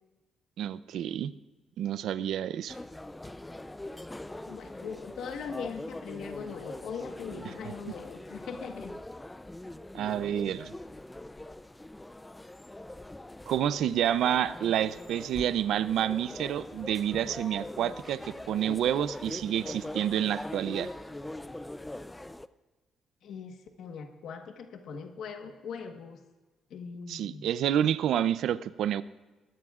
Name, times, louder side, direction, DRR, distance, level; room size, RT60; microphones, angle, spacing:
voice 1, 0.6-1.3 1.8-2.8 7.6-7.7 9.9-10.7 13.5-20.9 27.1-29.0, right 10 dB, 75° right, 16 dB, 0.5 m, -29 dB
sound 1, 2.7-22.5, left 1 dB, 10° left, 0.5 m, -42 dB
voice 2, 4.5-8.9 23.2-26.2 26.7-27.5, left 6 dB, 75° left, 5 dB, 1.3 m, -40 dB
21.5 x 16.5 x 2.4 m, 1.2 s
cardioid pair, 90°, 0 cm